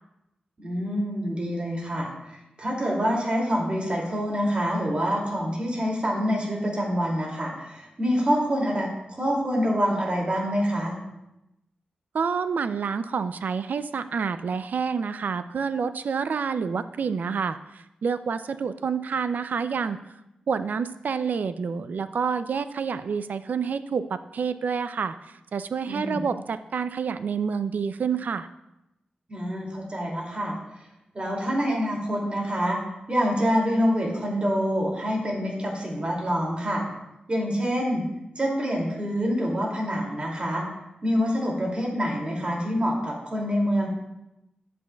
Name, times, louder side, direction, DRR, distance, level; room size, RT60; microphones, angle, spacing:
voice 1, 0.6-11.0 25.8-26.3 29.3-30.5 31.1-32.8 33.1-36.8 37.3-38.0 38.4-40.6 41.0-43.9, equal, 40° right, -2 dB, 2.5 m, -26 dB
voice 2, 12.1-20.0 20.5-28.5, right 6 dB, 80° right, 12 dB, 0.4 m, -28 dB
11.0 x 8.2 x 2.3 m, 0.89 s
wide cardioid pair, 70°, 3 cm